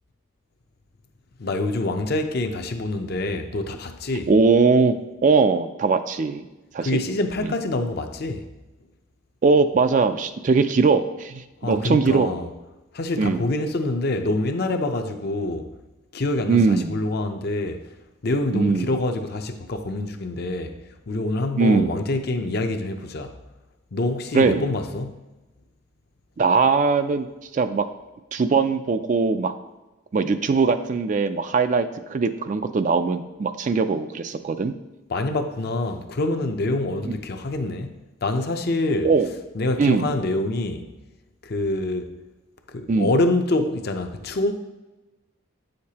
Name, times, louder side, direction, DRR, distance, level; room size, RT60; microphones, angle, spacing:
voice 1, 1.4-4.3 6.8-8.5 11.6-12.5 12.9-15.7 16.1-17.8 18.2-20.8 21.1-23.3 23.9-25.2 35.1-39.1 39.5-40.9 41.4-42.1 42.7-44.5, left 2 dB, 50° left, 0.6 m, -26 dB
voice 2, 4.3-6.5 6.7-7.0 7.4-7.5 9.4-12.3 13.2-13.4 16.5-17.0 18.5-18.9 21.6-22.0 24.3-24.6 26.4-27.3 27.5-27.8 28.3-29.5 30.1-34.7 39.0-39.3 39.8-40.1 42.9-43.1, right 4 dB, 40° right, 0.3 m, -20 dB
8.4 x 6.5 x 2.8 m
head